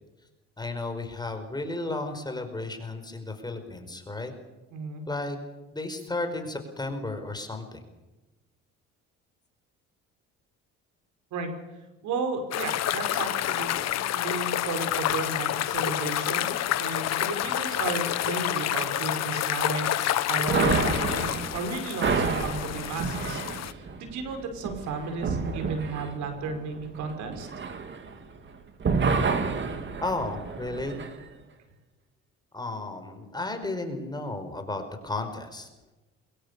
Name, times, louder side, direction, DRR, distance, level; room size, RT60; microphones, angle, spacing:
voice 1, 0.6-4.3 5.1-5.4 5.7-7.9 30.0-31.0 32.5-35.7, left 2 dB, 15° left, 6 dB, 4.9 m, -33 dB
voice 2, 4.7-5.0 11.3-11.5 12.0-27.5, right 3 dB, 70° right, 6 dB, 5.5 m, -34 dB
sound 1, 12.5-23.7, left 12 dB, 60° left, 1.4 m, -28 dB
sound 2, 20.5-28.5 28.8-31.1, right 5 dB, 40° right, 3.1 m, -29 dB
23.5 x 22.0 x 6.9 m, 1.1 s
supercardioid pair, 90°, 30 cm